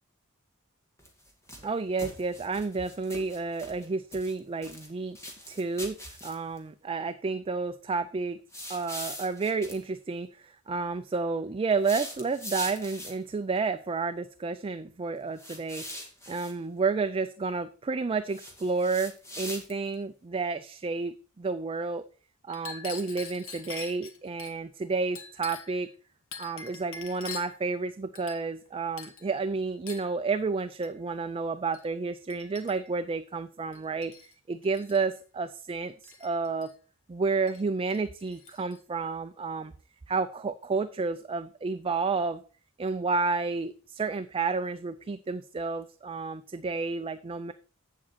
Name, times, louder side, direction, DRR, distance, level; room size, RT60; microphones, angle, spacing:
sound 1, 1.0-1.7 2.0-3.9 4.1-4.9 5.2-6.6 8.5-9.8 11.7-13.3 15.4-16.5 18.3-20.0, left 1 dB, 15° left, 1.9 m, -41 dB
voice 1, 1.6-5.2 5.5-6.0 6.2-8.4 8.7-15.9 16.3-22.0 22.5-25.9 26.4-36.0 36.2-36.7 37.1-39.7 40.1-42.4 42.8-47.5, right 4 dB, 25° right, 10 dB, 0.4 m, -31 dB
Chink clink, 22.5-24.5 25.2-25.8 26.3-27.6 28.2-28.7 29.0-29.3 29.9-30.1 30.8-31.0 31.7-31.9 32.3-33.0 33.7-34.3 34.6-35.0 36.0-36.7 37.5-37.6 37.9-38.8, left 6 dB, 65° left, 1.5 m, -44 dB
8.4 x 7.4 x 4.2 m, 0.38 s
head